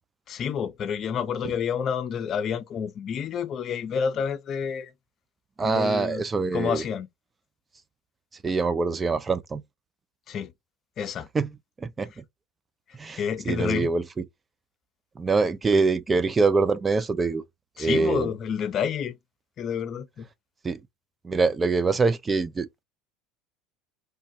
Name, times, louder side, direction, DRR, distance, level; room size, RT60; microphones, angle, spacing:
voice 1, 0.3-4.9 5.6-6.2 6.5-7.1 10.3-10.5 11.0-11.3 13.2-13.9 17.8-19.1 19.6-20.3, left 7 dB, 45° left, 0.5 m, -29 dB
voice 2, 5.6-6.8 8.4-9.6 11.3-11.5 11.8-12.1 13.0-14.2 15.2-17.4 17.8-18.3 20.6-20.8 21.2-22.8, right 4 dB, 25° right, 0.3 m, -24 dB
3.3 x 2.1 x 2.6 m
hypercardioid pair, 70°, 0 cm